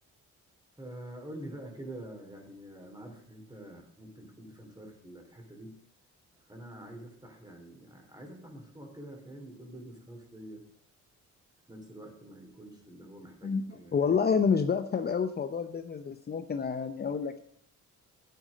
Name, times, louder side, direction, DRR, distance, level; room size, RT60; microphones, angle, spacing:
voice 1, 0.8-5.8 6.5-10.6 11.7-14.3, right 1 dB, 15° right, 3 dB, 3.7 m, -46 dB
voice 2, 13.9-17.4, left 6 dB, 35° left, 8 dB, 0.7 m, -28 dB
9.5 x 9.4 x 5.1 m, 0.68 s
cardioid pair, 90°, 30 cm